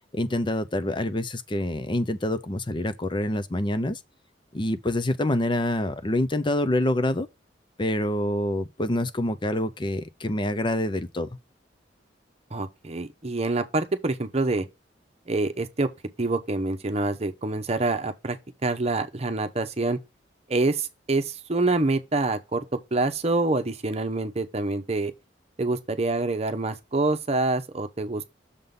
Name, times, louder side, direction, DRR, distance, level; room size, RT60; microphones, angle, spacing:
voice 1, 0.1-4.0 4.5-7.3 7.8-11.3, left 1 dB, 25° left, 0.6 m, -26 dB
voice 2, 12.5-14.7 15.3-15.9 16.2-18.4 18.6-20.0 20.5-25.1 25.6-28.3, right 2 dB, 35° right, 0.9 m, -26 dB
6.7 x 3.8 x 5.3 m
head